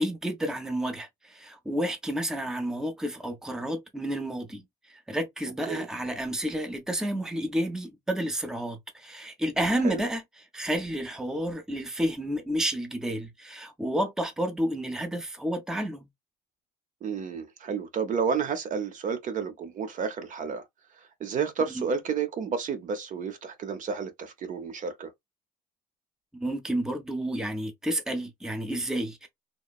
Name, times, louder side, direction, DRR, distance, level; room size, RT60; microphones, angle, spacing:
voice 1, 0.0-10.2 10.5-16.1 21.7-21.8 26.3-29.3, right 1 dB, 5° right, 0.6 m, -30 dB
voice 2, 17.0-20.6 21.2-25.1, right 6 dB, 50° right, 0.7 m, -31 dB
3.0 x 2.1 x 2.3 m
cardioid pair, 110°, 17 cm